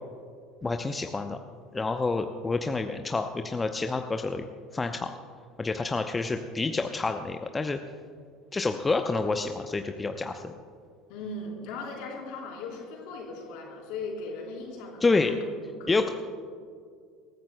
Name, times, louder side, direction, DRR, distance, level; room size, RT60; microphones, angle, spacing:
voice 1, 0.6-1.4 1.7-4.5 4.7-5.1 5.6-7.8 8.5-10.5 15.0-15.3 15.9-16.1, left 3 dB, 15° left, 6 dB, 0.6 m, -28 dB
voice 2, 11.1-15.4 15.7-16.0, left 3 dB, 55° left, -1 dB, 3.9 m, -38 dB
26.5 x 14.5 x 2.2 m, 2.2 s
figure-of-eight pair, 65°, 0 cm